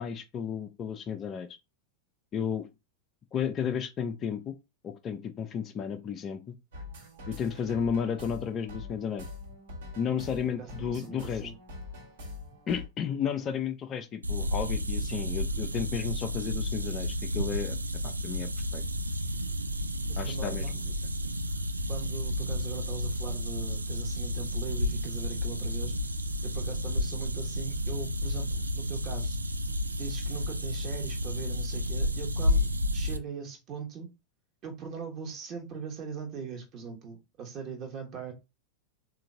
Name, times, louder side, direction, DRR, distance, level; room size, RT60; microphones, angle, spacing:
voice 1, 0.0-1.5 2.3-2.7 3.3-4.6 4.8-6.6 7.3-9.2 10.0-11.5 12.7-17.8 18.0-18.8 20.2-20.9, left 7 dB, 30° left, 0.4 m, -33 dB
sound 1, 6.7-12.9, left 2 dB, 60° right, 1.4 m, -43 dB
voice 2, 10.6-11.5 20.1-20.7 21.9-25.9 26.4-29.4 30.0-34.1 34.6-38.3, right 6 dB, 35° right, 1.1 m, -40 dB
sound 2, 14.2-33.2, left 1 dB, 80° right, 0.3 m, -31 dB
3.8 x 2.5 x 3.4 m
figure-of-eight pair, 90°, 0 cm